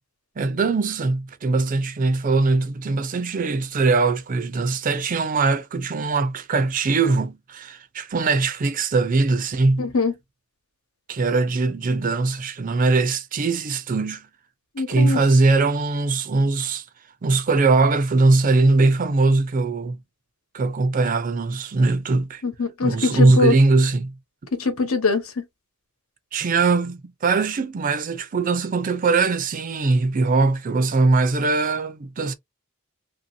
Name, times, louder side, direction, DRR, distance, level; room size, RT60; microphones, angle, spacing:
voice 1, 0.4-9.9 11.1-14.3 14.9-16.8 17.2-20.0 20.5-22.4 22.8-24.1 26.3-32.3, right 3 dB, 40° right, 0.4 m, -21 dB
voice 2, 9.8-10.1 14.8-15.2 22.4-23.5 24.5-25.4, left 3 dB, 90° left, 1.1 m, -22 dB
2.9 x 2.7 x 2.6 m
head